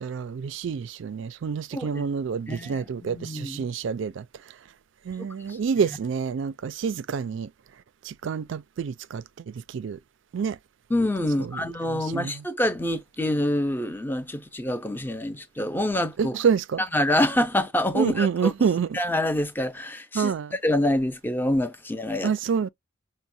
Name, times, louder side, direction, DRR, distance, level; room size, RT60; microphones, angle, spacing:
voice 1, 0.0-4.2 5.0-7.5 8.0-10.0 10.3-10.6 11.4-11.6 11.9-12.4 16.2-16.8 17.9-19.0 20.1-20.6 22.2-22.7, right 6 dB, 65° right, 0.4 m, -27 dB
voice 2, 1.7-2.0 2.5-3.7 5.2-5.6 10.9-16.4 16.9-18.5 18.9-20.3 20.6-22.3, left 1 dB, 10° left, 0.5 m, -26 dB
6.1 x 2.1 x 2.6 m
head